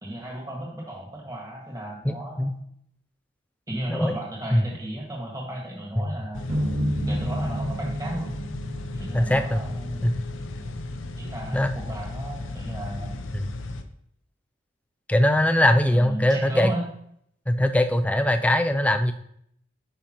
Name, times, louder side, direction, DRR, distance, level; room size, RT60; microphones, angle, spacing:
voice 1, 0.0-2.5 3.7-6.5 7.1-8.3 9.0-10.0 11.2-13.2 15.9-16.9, right 1 dB, 20° right, -3 dB, 1.6 m, -34 dB
voice 2, 2.0-2.6 3.9-4.1 4.5-4.6 6.0-6.1 9.1-9.6 10.0-10.1 11.5-11.7 13.3-13.5 15.1-16.7 17.5-19.1, left 1 dB, 5° left, 8 dB, 0.3 m, -21 dB
sound 1, 6.3-13.8, left 2 dB, 75° left, 0.6 m, -35 dB
sound 2, 6.5-9.7, equal, 40° right, 1.9 m, -29 dB
8.9 x 5.5 x 2.9 m, 0.70 s
head